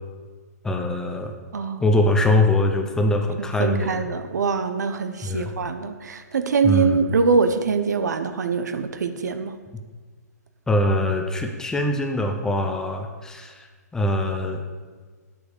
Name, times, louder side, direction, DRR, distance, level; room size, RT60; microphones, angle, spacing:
voice 1, 0.6-1.3 1.8-4.1 5.2-5.5 6.6-7.0 10.7-13.7 13.9-14.6, left 1 dB, 5° left, 4 dB, 0.9 m, -22 dB
voice 2, 1.5-1.8 3.4-9.5, right 5 dB, 75° right, 9 dB, 1.1 m, -23 dB
9.2 x 8.3 x 6.9 m, 1.5 s
hypercardioid pair, 145°, 9 cm